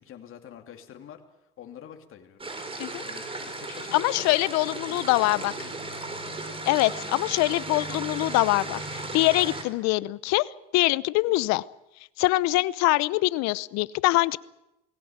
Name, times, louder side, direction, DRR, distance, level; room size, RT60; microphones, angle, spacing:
voice 1, 0.0-2.5 3.0-4.3 4.9-5.7 11.3-11.4, left 9 dB, 45° left, 4 dB, 2.9 m, -46 dB
sound 1, 2.4-9.6, right 2 dB, 20° right, 3.8 m, -36 dB
voice 2, 3.9-5.5 6.7-10.5 10.7-11.6 12.2-14.4, left 20 dB, 65° left, 19 dB, 0.8 m, -24 dB
20.0 x 17.0 x 8.9 m, 0.90 s
supercardioid pair, 100°, 29 cm